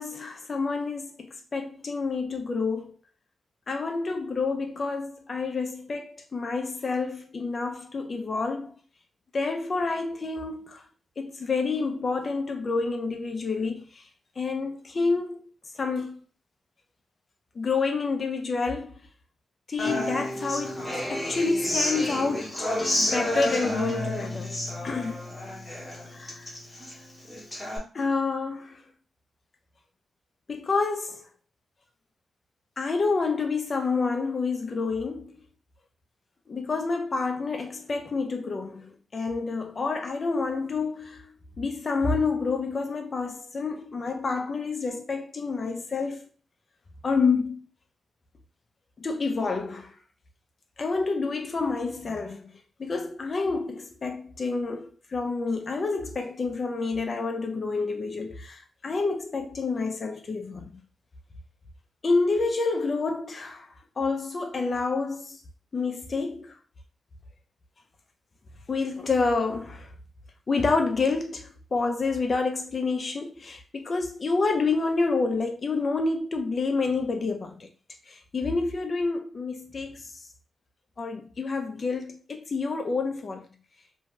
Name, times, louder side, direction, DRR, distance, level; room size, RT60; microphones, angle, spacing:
voice 1, 0.0-2.9 3.7-8.7 9.3-10.8 11.2-14.0 14.4-15.4 15.8-16.2 17.6-19.0 19.7-22.7 23.0-24.5 24.8-25.3 26.1-26.5 27.9-28.8 30.5-31.2 32.8-35.4 36.5-46.2 47.0-47.7 49.0-49.9 50.8-52.5 52.8-60.7 62.0-63.7 64.0-65.4 65.7-66.6 68.7-69.9 70.5-77.7 78.1-80.2 81.0-83.5, left 4 dB, 35° left, 0.5 m, -28 dB
Human voice / Acoustic guitar, 19.8-27.8, left 1 dB, 10° left, 0.9 m, -30 dB
2.6 x 2.2 x 3.0 m
wide cardioid pair, 175°, 0 cm